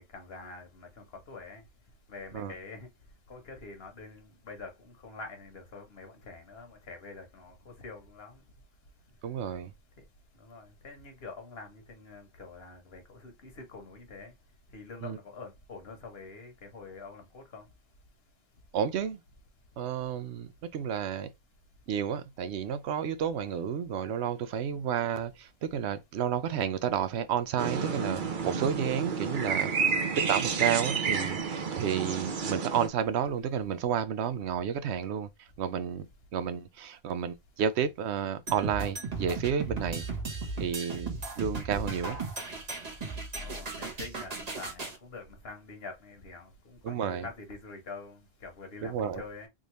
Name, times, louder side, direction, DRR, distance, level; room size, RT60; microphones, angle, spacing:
voice 1, 0.0-1.6 2.1-2.9 3.3-8.4 10.4-14.3 14.7-17.6 43.4-49.5, left 3 dB, 70° left, 1.4 m, -46 dB
voice 2, 9.2-9.7 15.0-15.2 18.7-19.2 19.8-21.3 21.9-29.7 30.2-40.0 40.6-42.2 46.8-47.3 48.8-49.2, right 8 dB, 85° right, 0.9 m, -31 dB
sound 1, 27.6-32.9, right 5 dB, 55° right, 0.8 m, -30 dB
sound 2, 38.5-45.0, right 3 dB, 40° right, 1.1 m, -36 dB
3.7 x 2.6 x 3.0 m
omnidirectional pair, 1.1 m